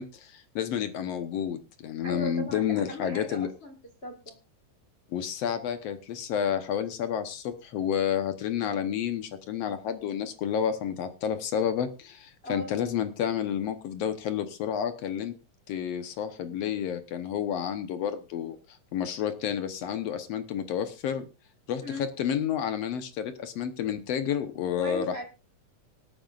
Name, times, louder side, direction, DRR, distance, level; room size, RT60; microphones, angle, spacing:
voice 1, 0.0-3.5 5.1-15.3 15.7-18.6 18.9-21.2 21.7-25.2, left 8 dB, 65° left, 9 dB, 1.7 m, -30 dB
voice 2, 2.0-3.7 4.0-4.4 12.4-12.7 21.8-22.1 24.7-25.2, equal, 40° left, 3 dB, 0.8 m, -37 dB
25.0 x 9.2 x 2.5 m, 0.28 s
omnidirectional pair, 3.9 m